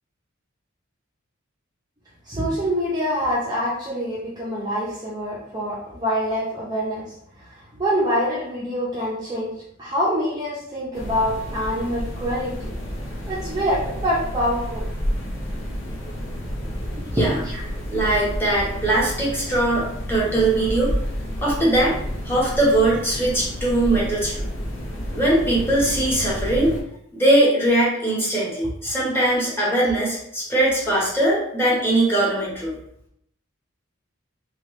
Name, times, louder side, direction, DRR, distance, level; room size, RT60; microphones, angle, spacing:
voice 1, 2.3-7.0 7.4-7.5 7.8-9.5 9.8-12.7 13.3-14.9 17.2-17.6 28.8-28.9, equal, 20° right, -6 dB, 0.6 m, -25 dB
sound 1, 10.9-26.8, equal, 65° left, 0.7 m, -30 dB
voice 2, 17.9-20.9 21.4-21.9 22.3-24.5 25.1-26.7 27.1-32.7, right 1 dB, 10° left, -6 dB, 1.0 m, -21 dB
3.1 x 2.3 x 3.1 m, 0.72 s
head